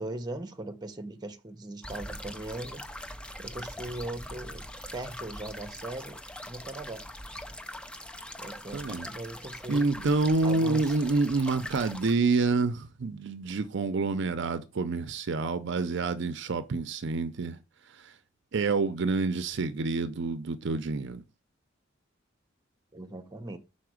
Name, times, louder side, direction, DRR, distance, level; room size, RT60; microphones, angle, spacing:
voice 1, 0.0-2.8 3.4-4.7 4.9-7.0 8.4-9.9 10.4-10.9 22.9-23.6, right 2 dB, 20° right, 0.9 m, -39 dB
sound 1, 1.8-12.1, left 1 dB, 5° left, 0.5 m, -42 dB
voice 2, 8.7-9.1 9.7-17.6 17.9-18.1 18.5-21.2, right 3 dB, 65° right, 0.5 m, -28 dB
5.8 x 4.2 x 6.3 m
head